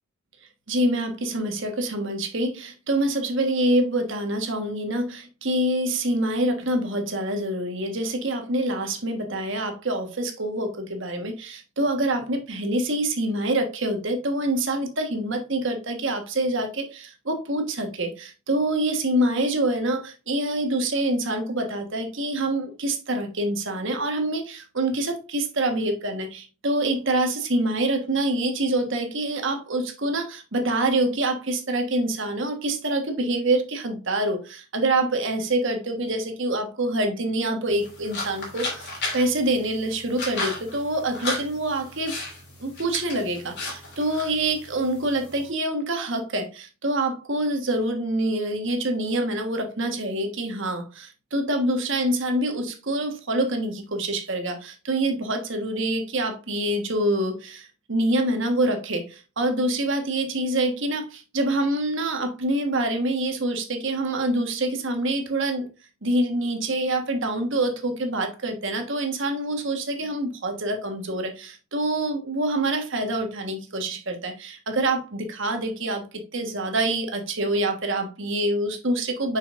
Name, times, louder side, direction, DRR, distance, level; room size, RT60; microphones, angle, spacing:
voice 1, 0.7-42.2 42.6-65.7 66.0-76.1 76.3-79.4, right 1 dB, 55° right, 1.4 m, -26 dB
sound 1, 37.7-45.5, left 2 dB, 50° left, 2.8 m, -35 dB
6.3 x 6.1 x 2.5 m
head